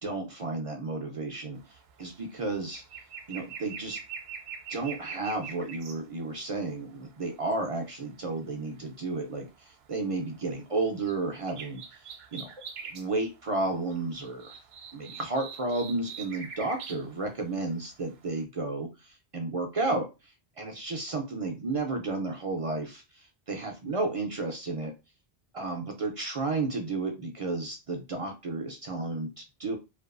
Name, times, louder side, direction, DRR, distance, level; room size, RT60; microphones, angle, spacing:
voice 1, 0.0-2.8 3.3-4.0 4.7-11.8 12.3-12.5 12.9-14.6 14.9-24.9 25.5-29.8, right 3 dB, 60° right, 3 dB, 0.3 m, -32 dB
sound 1, 1.6-1.8 2.1-6.0 6.8-7.5 9.5-9.7 10.1-11.2 11.5-13.1 13.5-13.6 13.8-17.1 17.5-18.1 18.4-18.5, right 6 dB, 75° right, 0.8 m, -43 dB
2.5 x 2.2 x 2.4 m, 0.26 s
omnidirectional pair, 1.1 m